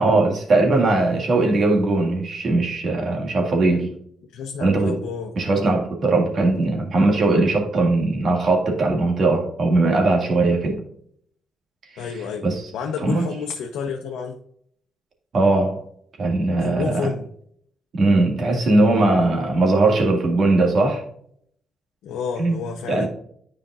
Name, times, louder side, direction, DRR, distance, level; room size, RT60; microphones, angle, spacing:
voice 1, 0.0-4.0 4.6-5.0 5.4-10.8 11.9-12.0 12.4-12.7 13.0-13.3 15.3-15.8 16.2-17.0 18.0-21.0 22.4-22.6 22.9-23.1, right 2 dB, 50° right, 1 dB, 2.0 m, -19 dB
voice 2, 4.3-5.3 12.0-12.4 12.7-14.4 16.6-17.3 22.0-23.1, left 6 dB, 85° left, 2 dB, 0.8 m, -30 dB
9.8 x 5.1 x 2.5 m, 0.66 s
cardioid pair, 90°, 0 cm